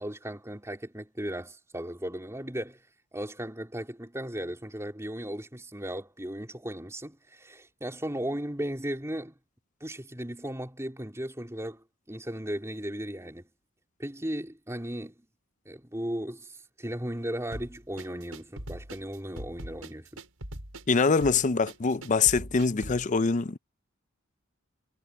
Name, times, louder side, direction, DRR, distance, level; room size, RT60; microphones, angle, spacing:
voice 1, 0.0-2.8 3.1-9.3 9.8-13.5 14.0-15.2 15.7-20.2, right 1 dB, 15° right, 3.9 m, -36 dB
sound 1, 17.5-23.1, right 1 dB, 85° right, 6.1 m, -41 dB
voice 2, 20.9-23.6, left 4 dB, 35° left, 0.5 m, -24 dB
head